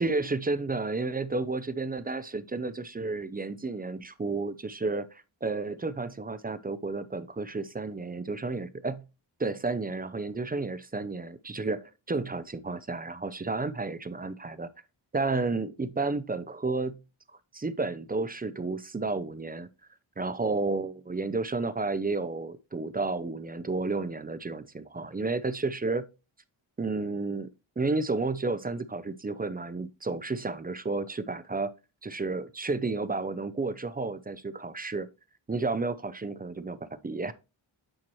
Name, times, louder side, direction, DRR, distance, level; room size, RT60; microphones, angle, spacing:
voice 1, 0.0-9.0 9.4-14.7 15.1-17.0 17.5-19.7 20.2-26.1 26.8-27.5 27.8-31.7 32.0-35.1 35.5-37.3, right 3 dB, 20° right, 0.4 m, -31 dB
8.7 x 4.4 x 3.0 m
wide cardioid pair, 140°, 47 cm